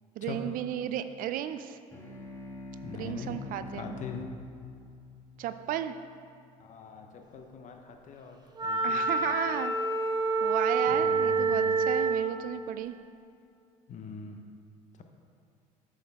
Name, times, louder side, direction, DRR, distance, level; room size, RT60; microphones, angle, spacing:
voice 1, 0.2-1.8 2.9-4.0 5.4-6.0 8.8-9.7 10.4-12.9, right 10 dB, 55° right, 10 dB, 0.4 m, -34 dB
sound 1, 1.9-6.8, left 1 dB, 15° left, 1.4 m, -46 dB
voice 2, 2.8-3.3 3.7-4.3 6.6-9.1 10.9-11.5 13.9-14.4, left 5 dB, 50° left, 4 dB, 0.9 m, -42 dB
Wind instrument woodwind instrument, 8.6-12.3, right 3 dB, 25° right, 0.9 m, -27 dB
8.9 x 6.2 x 3.6 m, 2.4 s
supercardioid pair, 85°, 17 cm